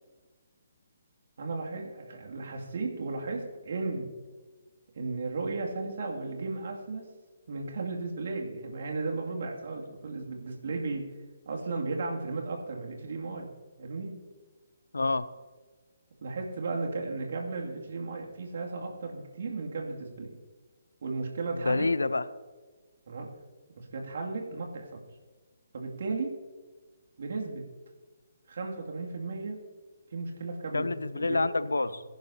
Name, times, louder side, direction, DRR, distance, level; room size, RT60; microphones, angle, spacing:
voice 1, 1.4-4.1 4.9-7.1 7.5-11.1 11.5-13.5 13.8-14.2 16.2-20.4 21.0-21.9 23.1-23.3 23.8-25.0 25.7-26.3 27.2-27.6 28.5-29.6 30.1-31.4 31.7-31.9, right 3 dB, 55° right, 0 dB, 2.5 m, -35 dB
voice 2, 14.9-15.3 21.5-22.2 30.7-32.0, left 3 dB, 80° left, 15 dB, 0.6 m, -27 dB
22.5 x 10.5 x 2.8 m, 1.3 s
figure-of-eight pair, 135°, 0 cm